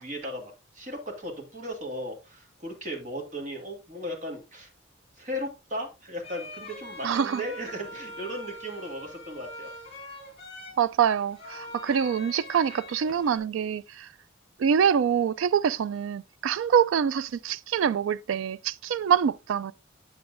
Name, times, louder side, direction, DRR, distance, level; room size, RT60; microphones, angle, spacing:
voice 1, 0.0-4.7 5.2-9.7, equal, 40° right, 1.9 m, -36 dB
sound 1, 6.2-13.4, left 1 dB, 30° left, 2.6 m, -43 dB
voice 2, 7.0-7.4 10.8-14.1 14.6-19.7, right 8 dB, 75° right, 0.3 m, -25 dB
8.6 x 6.9 x 2.5 m
head